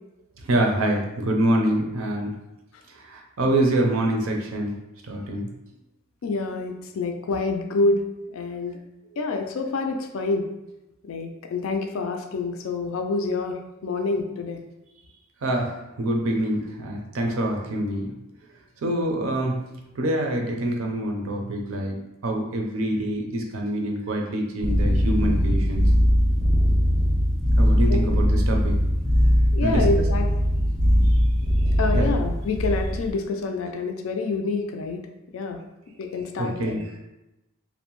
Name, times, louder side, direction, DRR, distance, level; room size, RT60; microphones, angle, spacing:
voice 1, 0.4-2.3 3.0-4.8 5.1-5.5 15.4-18.1 18.8-22.0 22.2-25.8 27.6-28.8 29.6-29.9 31.9-32.1 36.4-36.8, right 1 dB, 70° right, 2 dB, 0.5 m, -25 dB
voice 2, 6.2-8.0 8.3-8.8 9.2-10.4 11.0-14.6 27.9-28.0 29.5-30.3 31.8-35.0 35.3-35.6 36.0-36.8, left 3 dB, 70° left, 4 dB, 0.4 m, -27 dB
sound 1, 24.6-33.1, equal, 5° left, 0.6 m, -20 dB
2.6 x 2.1 x 2.9 m, 0.95 s
head